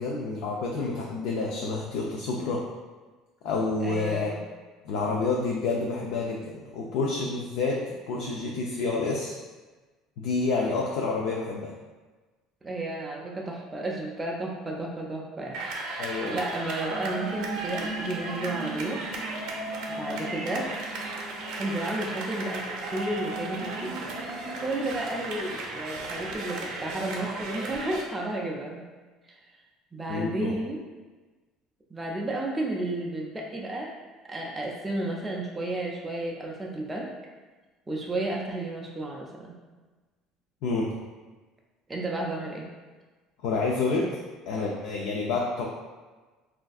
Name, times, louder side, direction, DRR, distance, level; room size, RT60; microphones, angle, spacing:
voice 1, 0.0-2.6 3.4-4.3 4.9-9.3 10.2-11.7 16.0-16.3 30.1-30.5 40.6-40.9 43.4-44.1 44.5-45.7, left 3 dB, 70° left, -2 dB, 0.3 m, -28 dB
voice 2, 3.8-4.4 12.6-19.0 19.9-20.7 21.5-24.1 24.6-28.8 29.3-29.4 29.9-30.8 31.9-33.9 34.3-37.1 37.9-39.5 41.9-42.7, right 2 dB, 10° right, -1 dB, 0.3 m, -32 dB
sound 1, 15.5-28.0, right 2 dB, 65° right, 0.5 m, -35 dB
sound 2, 16.8-25.4, right 2 dB, 45° left, 0.8 m, -40 dB
3.3 x 2.4 x 2.3 m, 1.3 s
cardioid pair, 165°, 0 cm